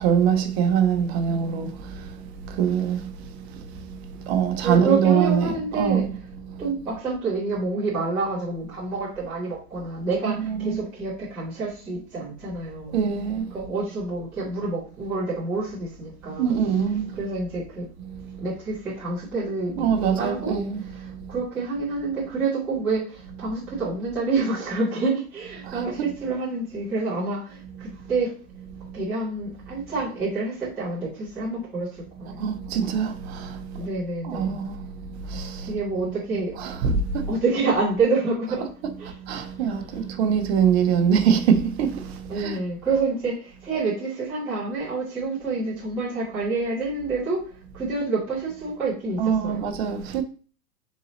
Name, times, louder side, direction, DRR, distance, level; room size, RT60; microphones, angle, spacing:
voice 1, 0.0-1.7 2.0-2.1 2.5-3.1 4.2-6.1 10.2-10.8 12.9-13.5 16.4-17.1 19.8-20.8 25.6-26.1 32.4-33.9 34.2-34.8 35.3-35.7 36.0-37.4 38.8-38.9 39.3-42.6 49.2-50.2, right 7 dB, 40° right, 0.7 m, -24 dB
voice 2, 4.6-6.0 6.6-12.9 13.5-16.6 17.1-17.9 18.4-20.5 20.9-28.3 28.9-32.5 33.7-34.6 35.7-36.5 37.3-38.7 39.0-39.1 39.5-39.6 39.9-40.1 42.3-49.7, right 3 dB, 5° right, 0.3 m, -28 dB
4.0 x 2.8 x 3.9 m
hypercardioid pair, 135°, 47 cm